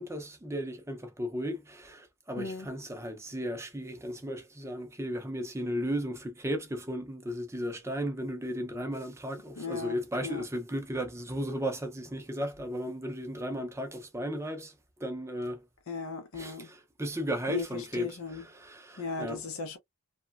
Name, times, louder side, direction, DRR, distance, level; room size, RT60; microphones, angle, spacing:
voice 1, 0.0-14.7 15.0-15.6 16.3-19.4, equal, 15° right, 0.5 m, -35 dB
voice 2, 2.4-2.7 9.6-10.4 15.9-16.7 17.5-18.4 19.0-19.8, left 4 dB, 80° left, 0.6 m, -37 dB
3.0 x 2.2 x 2.3 m
head